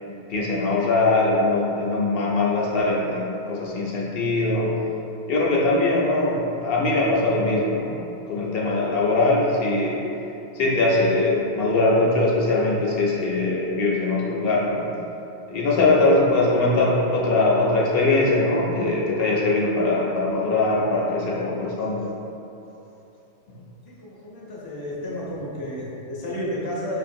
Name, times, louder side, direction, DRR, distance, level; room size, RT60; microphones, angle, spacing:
voice 1, 0.3-4.7 5.3-7.9 8.3-10.0 10.5-14.8 15.5-22.0, left 2 dB, 65° left, -4 dB, 0.7 m, -21 dB
voice 2, 23.8-27.0, left 1 dB, 30° left, -6 dB, 0.5 m, -32 dB
5.0 x 2.4 x 2.6 m, 2.9 s
omnidirectional pair, 1.2 m